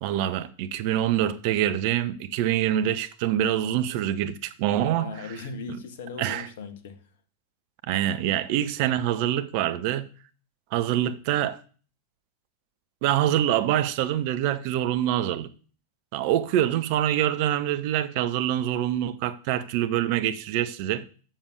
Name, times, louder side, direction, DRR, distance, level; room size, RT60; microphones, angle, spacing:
voice 1, 0.0-5.1 6.2-6.5 7.9-10.1 10.7-11.6 13.0-15.5 16.1-21.1, right 11 dB, 45° right, 0.7 m, -25 dB
voice 2, 4.9-7.0, left 4 dB, 55° left, 1.3 m, -38 dB
7.3 x 7.1 x 6.5 m
figure-of-eight pair, 90°, 0 cm